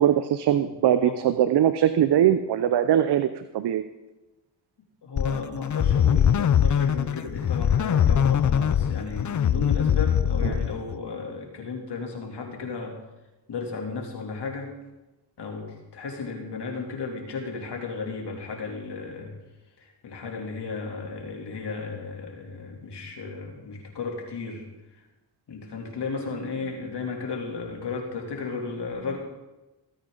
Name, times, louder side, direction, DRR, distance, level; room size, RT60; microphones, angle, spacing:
voice 1, 0.0-3.8 10.4-10.6, right 10 dB, 65° right, 11 dB, 0.7 m, -21 dB
voice 2, 0.6-1.2 5.0-13.0 13.5-14.7 15.4-19.3 19.8-24.7 25.5-29.2, left 4 dB, 70° left, 1 dB, 3.0 m, -34 dB
sound 1, 5.2-11.0, left 8 dB, 45° left, 0.7 m, -22 dB
20.5 x 9.0 x 3.9 m, 1.1 s
cardioid pair, 60°, 43 cm